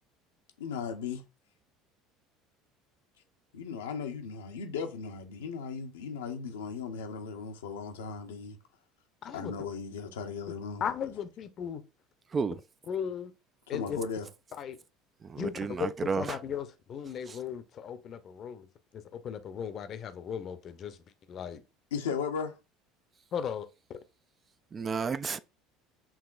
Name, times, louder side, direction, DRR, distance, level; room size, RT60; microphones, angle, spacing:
voice 1, 0.6-1.2 3.5-8.6 9.3-10.8 13.7-14.3 21.9-22.5, left 5 dB, 80° left, 0.7 m, -36 dB
voice 2, 10.8-11.8 12.9-13.3 13.7-14.0 14.6-14.8 15.4-15.9 16.2-18.7 19.1-21.0 21.3-21.6 23.3-24.0, left 8 dB, 45° left, 0.6 m, -36 dB
voice 3, 15.2-16.4 17.3-17.4 24.7-25.4, right 5 dB, 30° right, 0.3 m, -32 dB
7.1 x 2.8 x 2.5 m
hypercardioid pair, 75°, 0 cm